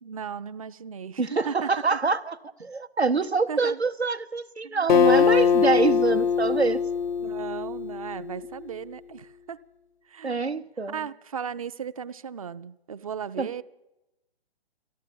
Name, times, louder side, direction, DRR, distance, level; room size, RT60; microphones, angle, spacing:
voice 1, 0.0-2.0 3.5-3.8 4.6-5.1 7.2-9.6 10.1-10.5 10.9-13.6, right 7 dB, 35° right, 15 dB, 0.5 m, -36 dB
voice 2, 1.2-6.8 10.2-11.0 13.4-13.5, right 4 dB, 85° right, 10 dB, 1.0 m, -25 dB
Acoustic guitar, 4.9-8.5, left 7 dB, 50° left, 0.5 m, -22 dB
14.5 x 11.0 x 8.5 m, 0.94 s
figure-of-eight pair, 135°, 31 cm